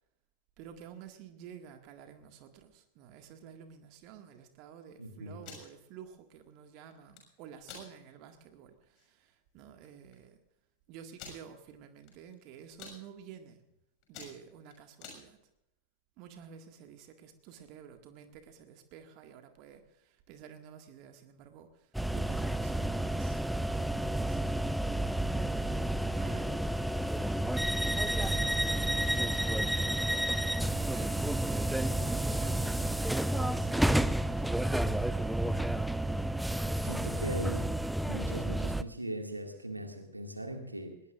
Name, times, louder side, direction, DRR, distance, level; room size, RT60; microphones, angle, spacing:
voice 1, 0.6-10.4 10.9-13.6 14.1-15.5 16.2-23.4 23.7-24.9 25.3-27.5 27.8-29.9 30.6-36.3 37.0-37.3, right 8 dB, 40° right, 6 dB, 1.8 m, -51 dB
voice 2, 5.0-5.5 36.8-37.7 38.1-41.0, right 1 dB, 85° right, 4 dB, 2.1 m, -39 dB
sound 1, 5.3-5.7 6.9-7.2 7.6-7.9 8.4-8.5 8.8-9.1 9.8-9.9 10.1-10.2 11.2-11.4 12.0-12.3 12.6-13.0 13.5-13.7 14.0-15.2, left 5 dB, 40° left, 6.3 m, -48 dB
sound 2, 22.0-38.8, right 1 dB, ahead, 0.5 m, -30 dB
21.0 x 19.5 x 2.5 m, 0.81 s
figure-of-eight pair, 90°, 0 cm